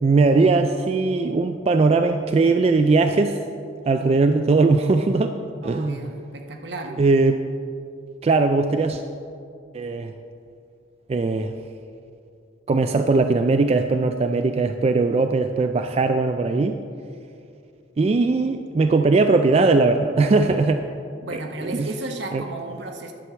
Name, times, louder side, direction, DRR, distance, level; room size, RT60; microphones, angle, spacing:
voice 1, 0.0-3.4 3.9-5.3 5.6-6.0 7.0-7.4 8.2-9.0 9.7-10.1 11.1-11.5 12.7-16.8 18.0-20.8 21.3-21.4 21.7-21.9 22.3-22.4, right 3 dB, 35° right, 7 dB, 0.3 m, -19 dB
voice 2, 5.6-7.0 21.2-23.1, right 2 dB, 70° right, 3 dB, 1.1 m, -34 dB
11.0 x 4.7 x 6.9 m, 2.4 s
head